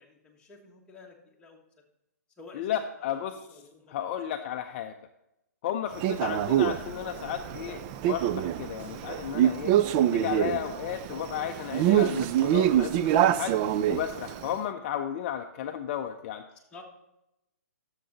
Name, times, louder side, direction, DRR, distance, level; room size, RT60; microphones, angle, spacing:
voice 1, 0.0-1.6 2.4-2.7 3.0-3.2 3.5-4.2 5.8-5.9 8.8-9.0 16.7-16.8, left 4 dB, 10° left, -2 dB, 1.5 m, -51 dB
voice 2, 2.5-3.6 3.9-4.9 5.6-9.7 10.1-13.6 13.9-16.4, left 10 dB, 40° left, 6 dB, 0.5 m, -33 dB
Male speech man speaking, 6.0-14.5, right 11 dB, 30° right, 0.3 m, -26 dB
sound 1, 6.3-13.3, equal, 15° right, 1.7 m, -50 dB
12.0 x 6.7 x 4.1 m, 0.88 s
hypercardioid pair, 145°, 9 cm